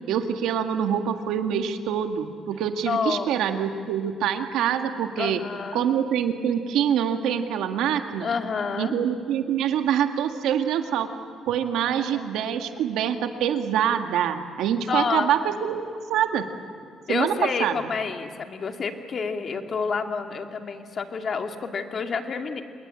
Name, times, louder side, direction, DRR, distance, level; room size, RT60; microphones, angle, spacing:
voice 1, 0.1-5.4 5.7-8.3 8.8-11.1 11.5-16.5 17.1-17.3 17.6-17.8, right 9 dB, 90° right, 6 dB, 1.8 m, -25 dB
voice 2, 2.8-3.4 5.2-5.8 8.2-8.9 11.8-12.4 14.9-15.3 17.1-22.6, left 5 dB, 50° left, 5 dB, 2.4 m, -29 dB
27.0 x 21.5 x 8.9 m, 2.3 s
cardioid pair, 90°, 0 cm